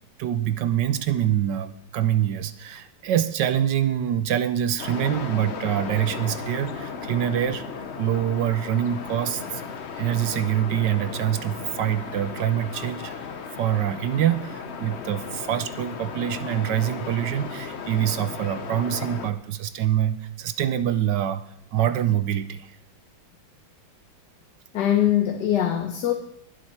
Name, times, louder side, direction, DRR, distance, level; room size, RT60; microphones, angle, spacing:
voice 1, 0.2-7.6 8.0-9.6 10.0-22.8, right 11 dB, 70° right, 1.2 m, -25 dB
sound 1, 4.8-19.3, left 5 dB, 45° left, 1.0 m, -35 dB
voice 2, 24.7-26.1, left 11 dB, 65° left, 1.5 m, -22 dB
21.0 x 7.8 x 4.4 m
omnidirectional pair, 2.1 m